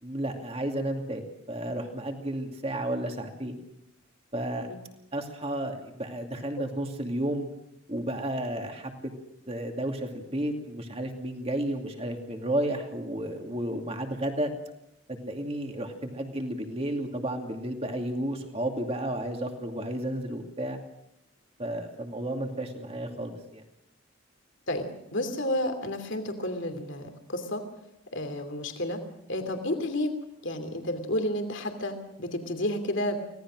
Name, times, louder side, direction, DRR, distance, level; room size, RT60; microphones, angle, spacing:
voice 1, 0.0-3.6 4.3-4.7 5.1-7.5 7.9-9.1 9.5-14.5 15.2-20.8 21.6-23.6, right 1 dB, 30° right, 4 dB, 2.6 m, -32 dB
voice 2, 24.7-27.6 28.1-29.0 29.3-30.1 30.4-33.2, left 1 dB, 60° left, 7 dB, 2.9 m, -31 dB
25.0 x 18.0 x 6.3 m, 0.83 s
head